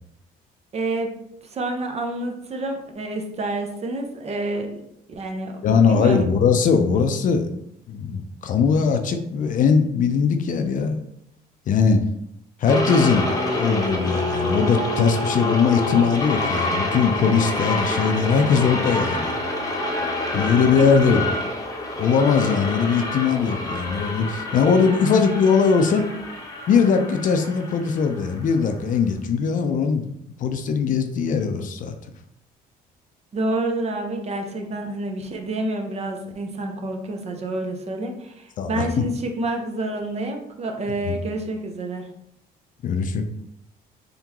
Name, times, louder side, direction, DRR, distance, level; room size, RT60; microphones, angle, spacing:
voice 1, 0.7-1.1 1.5-4.8 5.1-5.5 5.9-6.3 20.8-20.9 33.3-42.1, right 2 dB, 40° right, 4 dB, 0.7 m, -28 dB
voice 2, 5.6-7.5 7.9-11.0 11.7-12.0 12.6-19.4 20.3-21.3 21.9-26.1 26.7-30.1 30.4-32.0 38.6-39.0 41.0-41.2 42.8-43.2, left 5 dB, 50° left, 7 dB, 0.5 m, -20 dB
sound 1, 12.7-28.9, left 2 dB, 20° left, 0.8 m, -27 dB
3.7 x 3.5 x 3.0 m, 0.77 s
cardioid pair, 110°, 17 cm